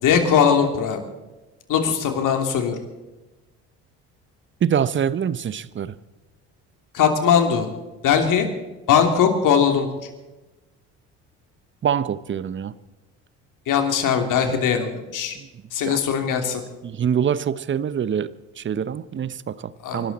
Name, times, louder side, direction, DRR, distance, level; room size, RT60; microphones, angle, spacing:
voice 1, 0.0-1.0 1.7-2.8 6.9-7.7 8.0-8.5 8.9-9.9 13.7-15.4 15.7-16.6 19.8-20.0, left 7 dB, 60° left, 3.1 m, -20 dB
voice 2, 4.6-5.9 11.8-12.7 15.4-15.5 15.8-16.0 16.8-20.1, right 8 dB, 35° right, 0.8 m, -25 dB
26.0 x 12.0 x 4.2 m
hypercardioid pair, 65°, 36 cm